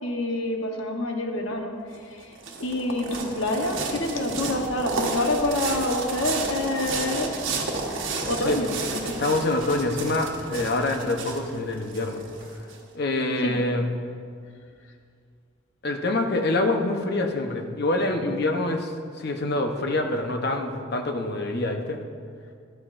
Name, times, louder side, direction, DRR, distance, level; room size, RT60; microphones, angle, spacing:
voice 1, 0.0-2.3 2.6-7.4 8.3-9.2 13.4-13.6, left 1 dB, 80° left, 3 dB, 1.1 m, -27 dB
sound 1, 1.9-12.8, right 3 dB, 75° right, 1.3 m, -32 dB
voice 2, 9.2-12.2 12.9-13.9 15.8-18.9 19.2-22.0, left 2 dB, 55° left, 4 dB, 0.9 m, -25 dB
13.0 x 11.5 x 2.6 m, 2.2 s
head